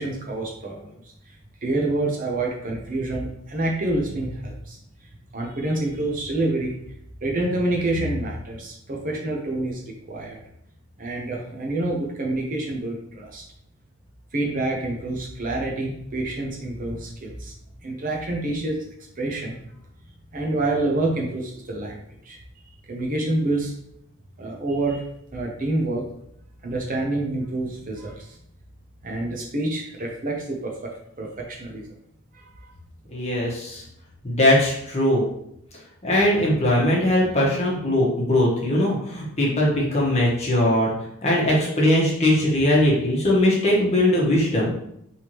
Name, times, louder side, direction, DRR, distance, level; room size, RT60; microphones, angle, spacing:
voice 1, 0.0-1.4 1.6-4.8 5.3-6.8 7.2-10.4 11.0-13.4 14.3-17.5 17.8-18.8 19.2-19.6 20.3-22.4 22.9-23.7 24.4-25.0 25.3-26.0 26.6-28.4 29.0-31.9 32.3-32.7, right 2 dB, 35° right, 0 dB, 0.7 m, -27 dB
voice 2, 33.1-33.8 34.2-35.2 36.0-40.9 41.2-44.7, left 1 dB, 30° left, -5 dB, 1.2 m, -20 dB
4.5 x 3.4 x 3.0 m, 0.75 s
head